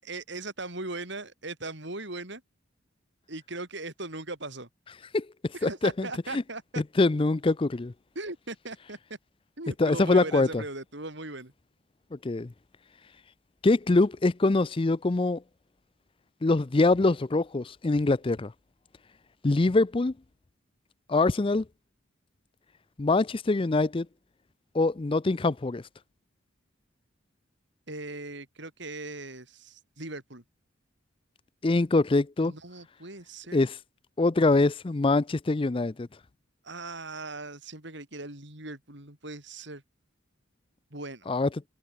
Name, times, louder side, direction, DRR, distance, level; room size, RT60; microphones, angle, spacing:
voice 1, 0.0-2.4 3.3-4.7 5.5-6.8 8.1-9.0 9.6-11.5 27.9-30.4 32.4-33.7 36.6-39.8 40.9-41.3, right 2 dB, 60° right, 5.1 m, -39 dB
voice 2, 5.1-6.1 6.3-6.4 7.0-7.9 9.8-10.6 12.1-12.5 13.6-15.4 16.4-18.5 19.4-20.1 21.1-21.6 23.0-24.1 24.7-25.8 31.6-32.5 33.5-33.8 34.2-36.1 41.3-41.5, left 2 dB, 25° left, 0.5 m, -24 dB
head